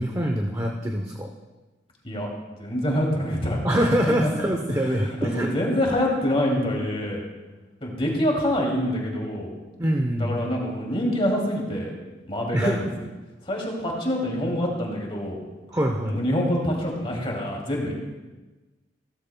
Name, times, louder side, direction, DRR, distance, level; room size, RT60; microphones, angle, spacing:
voice 1, 0.0-1.3 3.6-5.5 9.8-10.5 12.5-12.8 15.7-16.2, equal, 15° right, 2 dB, 0.7 m, -24 dB
voice 2, 2.6-3.6 4.2-4.3 5.2-7.2 7.8-9.5 10.2-11.9 12.3-12.8 13.4-15.4 16.0-17.9, equal, 30° left, -1 dB, 2.5 m, -25 dB
16.0 x 13.5 x 2.2 m, 1.2 s
head